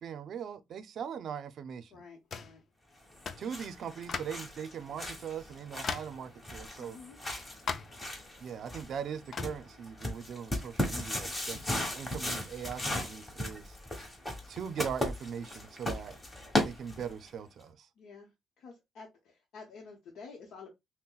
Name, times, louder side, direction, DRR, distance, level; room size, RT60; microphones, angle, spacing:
voice 1, 0.0-2.0 3.4-7.0 8.4-13.8 14.5-16.2 16.6-17.9, right 7 dB, 65° right, 0.5 m, -40 dB
voice 2, 1.9-2.6 6.8-7.2 18.0-18.3 18.6-20.7, left 4 dB, 75° left, 0.9 m, -50 dB
sound 1, 2.3-2.6 3.2-3.5 4.1-4.5 5.1-5.2 5.8-6.2 7.7-8.0 9.3-9.6, left 6 dB, 50° left, 0.4 m, -37 dB
sound 2, 3.1-17.3, left 1 dB, 25° left, 1.3 m, -37 dB
5.4 x 2.1 x 2.3 m
cardioid pair, 90°, 0 cm